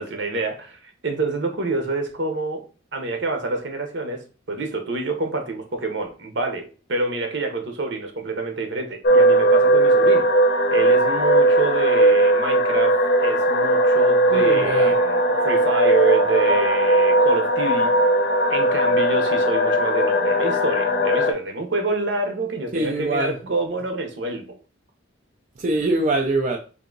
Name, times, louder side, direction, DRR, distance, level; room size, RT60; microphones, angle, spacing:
voice 1, 0.0-2.6 2.9-4.2 4.5-6.6 6.9-10.3 10.7-12.9 13.2-15.2 15.4-17.9 18.5-24.6, right 3 dB, 65° right, 0.9 m, -27 dB
sound 1, 9.0-21.3, right 1 dB, 50° left, 0.6 m, -18 dB
voice 2, 14.3-15.0 22.7-23.4 25.6-26.6, right 2 dB, 40° right, 0.4 m, -23 dB
3.6 x 2.7 x 3.8 m
head